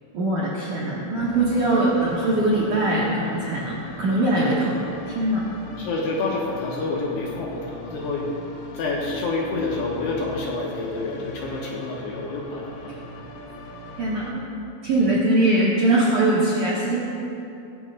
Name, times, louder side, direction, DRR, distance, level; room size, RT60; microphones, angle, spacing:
voice 1, 0.1-4.7 5.1-5.4 14.0-14.5 14.8-17.0, right 1 dB, 65° right, -7 dB, 2.1 m, -21 dB
sound 1, 1.2-14.3, left 1 dB, 90° left, 1.9 m, -40 dB
voice 2, 5.8-8.3 8.7-13.1 14.9-15.1, left 3 dB, 65° left, -4 dB, 2.9 m, -28 dB
19.0 x 16.5 x 2.4 m, 2.7 s
omnidirectional pair, 6.0 m